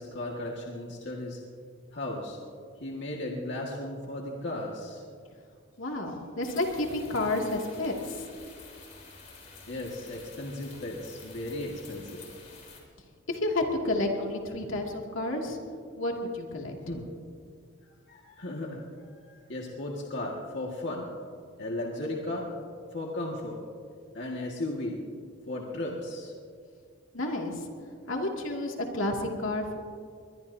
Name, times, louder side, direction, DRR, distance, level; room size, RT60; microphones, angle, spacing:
voice 1, 0.0-1.4 1.9-2.4 2.8-5.0 9.7-12.3 16.9-17.1 18.1-21.1 21.6-22.5 22.9-23.6 24.1-25.0 25.5-26.3, left 1 dB, 60° left, -2 dB, 1.8 m, -35 dB
voice 2, 5.8-8.3 13.3-15.6 16.0-16.8 27.1-27.6 28.1-29.8, left 2 dB, 80° left, 0 dB, 2.4 m, -30 dB
sound 1, 6.4-12.8, left 3 dB, 35° left, 3.9 m, -49 dB
22.5 x 22.0 x 2.7 m, 2.2 s
head